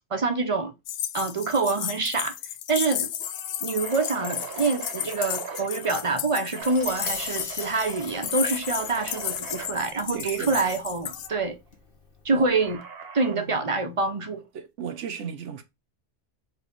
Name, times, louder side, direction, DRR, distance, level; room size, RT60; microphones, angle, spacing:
voice 1, 0.1-0.7 1.1-2.3 2.7-3.1 3.6-11.6 12.2-12.8 13.1-14.4, right 3 dB, 30° right, 0.8 m, -26 dB
sound 1, 0.9-11.3, left 11 dB, 75° left, 0.8 m, -33 dB
sound 2, 1.6-1.9 2.2-2.3 2.8-6.1 6.5-9.7 11.1-11.5 12.6-13.5, right 6 dB, 60° right, 1.2 m, -40 dB
Tap, 6.6-12.7, left 3 dB, 50° left, 1.5 m, -42 dB
voice 2, 10.1-10.7 12.3-12.5 13.3-13.6 14.5-15.6, right 7 dB, 85° right, 1.2 m, -35 dB
4.7 x 3.8 x 5.3 m
omnidirectional pair, 1.2 m